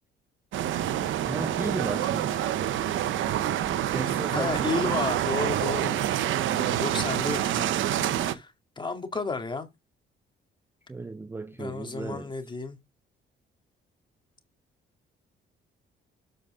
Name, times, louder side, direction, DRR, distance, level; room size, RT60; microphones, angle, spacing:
sound 1, 0.5-8.3, right 11 dB, 80° right, 0.8 m, -27 dB
voice 1, 1.3-2.4 3.9-4.8 8.0-8.2 10.9-12.3, right 3 dB, 10° right, 0.4 m, -34 dB
voice 2, 4.3-6.0 6.5-9.7 11.6-12.8, left 3 dB, 25° left, 2.3 m, -32 dB
7.9 x 5.2 x 4.9 m
cardioid pair, 90°, 20 cm